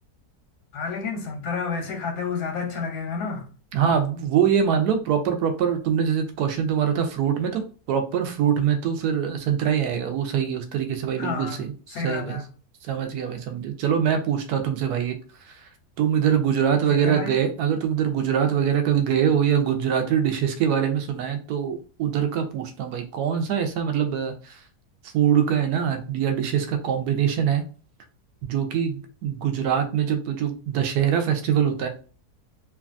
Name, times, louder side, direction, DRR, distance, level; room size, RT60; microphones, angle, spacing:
voice 1, 0.7-3.5 11.2-11.6 11.9-12.4 16.9-17.4, left 5 dB, 85° left, 1.3 m, -30 dB
voice 2, 3.7-7.6 7.9-12.4 12.8-15.2 15.4-15.7 16.0-24.6 25.0-27.6 28.4-31.9, right 8 dB, 80° right, 1.1 m, -23 dB
3.2 x 2.2 x 2.4 m
omnidirectional pair, 1.7 m